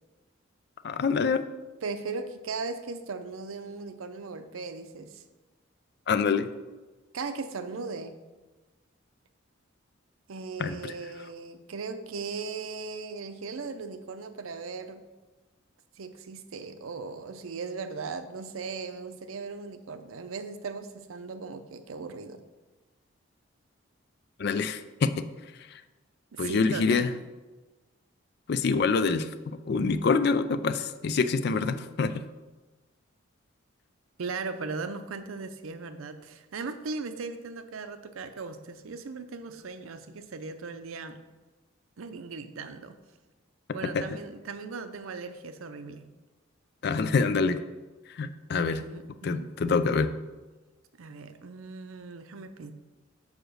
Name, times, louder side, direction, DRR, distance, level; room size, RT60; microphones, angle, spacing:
voice 1, 0.8-1.5 6.1-6.5 10.6-10.9 24.4-25.2 26.4-27.1 28.5-32.3 43.8-44.1 46.8-47.6 48.2-48.8 49.2-50.1, left 4 dB, 50° left, 11 dB, 0.4 m, -26 dB
voice 2, 1.8-5.2 7.1-8.2 10.3-15.0 16.0-22.4 26.3-27.1 34.2-41.3 42.0-43.0 43.7-46.0 48.8-49.5 51.0-52.7, right 4 dB, 85° right, 10 dB, 0.6 m, -38 dB
5.0 x 4.9 x 6.3 m, 1.2 s
head